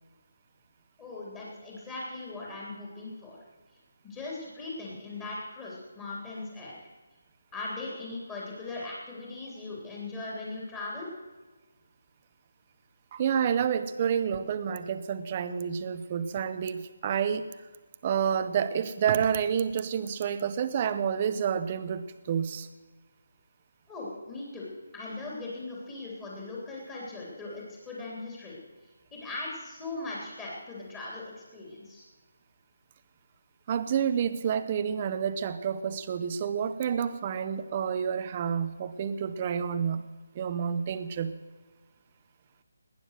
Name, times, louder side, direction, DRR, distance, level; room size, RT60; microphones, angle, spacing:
voice 1, 1.0-3.4 4.0-6.9 7.5-11.1 23.9-24.7 24.9-28.6 29.1-32.0, left 2 dB, 10° left, -5 dB, 3.3 m, -39 dB
voice 2, 13.1-17.5 18.0-22.7 33.7-41.4, right 8 dB, 25° right, 11 dB, 0.8 m, -29 dB
19.5 x 9.5 x 6.6 m, 1.3 s
hypercardioid pair, 170°, 0 cm